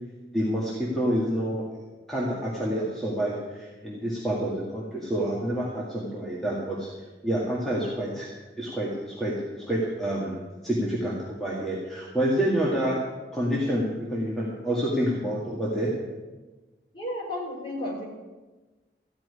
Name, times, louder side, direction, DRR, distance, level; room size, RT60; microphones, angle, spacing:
voice 1, 0.3-1.7 2.1-6.9 7.2-8.3 8.6-10.4 10.6-13.0 13.3-15.9, equal, ahead, -6 dB, 1.9 m, -28 dB
voice 2, 16.9-18.1, left 1 dB, 25° left, -4 dB, 4.5 m, -32 dB
14.5 x 6.0 x 9.7 m, 1.2 s
head